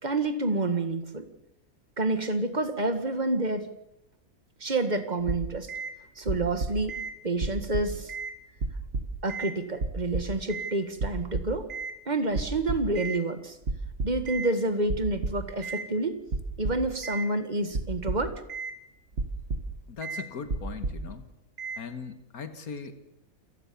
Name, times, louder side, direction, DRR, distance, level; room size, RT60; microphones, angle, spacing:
voice 1, 0.0-1.3 2.0-3.7 4.6-5.7 6.2-7.0 7.2-8.1 9.2-11.7 12.1-13.6 14.0-16.2 16.6-18.3, right 2 dB, 30° right, 9 dB, 2.0 m, -28 dB
sound 1, 5.3-5.9 6.3-7.1 7.4-8.3 8.6-9.5 9.8-10.7 11.0-11.9 12.3-13.2 13.7-14.5 14.9-15.9 16.3-17.3 17.7-18.7 19.1-19.8 20.0-20.2 20.5-21.1 21.6-21.8, right 3 dB, 55° right, 2.4 m, -32 dB
voice 2, 19.9-21.3 21.8-23.0, left 5 dB, 90° left, 9 dB, 2.0 m, -39 dB
28.0 x 19.0 x 7.1 m, 0.84 s
omnidirectional pair, 1.5 m